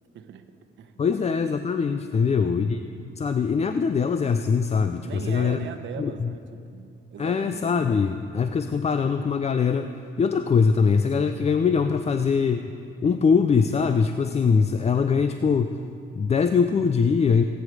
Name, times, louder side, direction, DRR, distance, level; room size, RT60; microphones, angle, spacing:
voice 1, 0.1-0.5 0.8-1.2 2.1-2.3 3.2-3.3 5.0-7.6, right 7 dB, 70° right, 8 dB, 1.1 m, -40 dB
voice 2, 1.0-5.6 6.0-6.3 7.2-9.9 10.2-12.8 13.0-15.8 16.1-17.4, left 5 dB, 35° left, 8 dB, 0.5 m, -22 dB
21.5 x 9.3 x 4.7 m, 2.5 s
cardioid pair, 90°, 20 cm